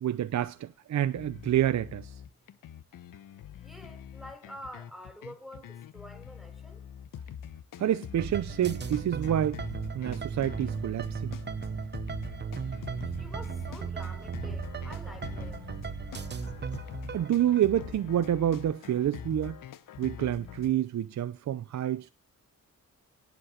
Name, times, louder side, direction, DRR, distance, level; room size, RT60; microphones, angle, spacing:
voice 1, 0.0-2.1 7.8-9.6 9.9-11.4 17.1-19.6 20.0-22.1, right 11 dB, 60° right, 0.7 m, -28 dB
sound 1, 1.1-20.7, left 9 dB, 85° left, 1.1 m, -44 dB
voice 2, 3.6-5.7 5.9-6.8 13.2-15.7, equal, ahead, 3.7 m, -47 dB
sound 2, 8.2-17.6, right 6 dB, 35° right, 0.9 m, -36 dB
18.0 x 8.3 x 6.4 m
wide cardioid pair, 175°, 32 cm